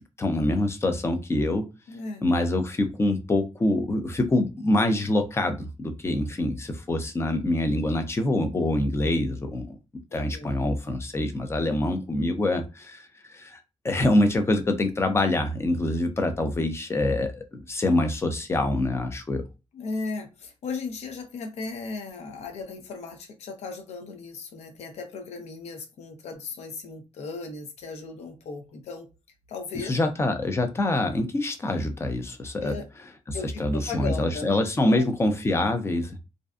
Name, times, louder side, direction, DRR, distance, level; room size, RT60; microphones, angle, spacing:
voice 1, 0.2-1.6 2.2-9.8 10.1-19.4 29.8-32.7 33.3-36.2, left 1 dB, 25° left, 0.5 m, -25 dB
voice 2, 1.9-2.2 10.1-10.5 19.7-29.1 29.5-30.0 32.6-32.9 33.3-34.5 34.8-35.1, left 4 dB, 80° left, 0.7 m, -36 dB
2.5 x 2.2 x 2.4 m
cardioid pair, 100°, 11 cm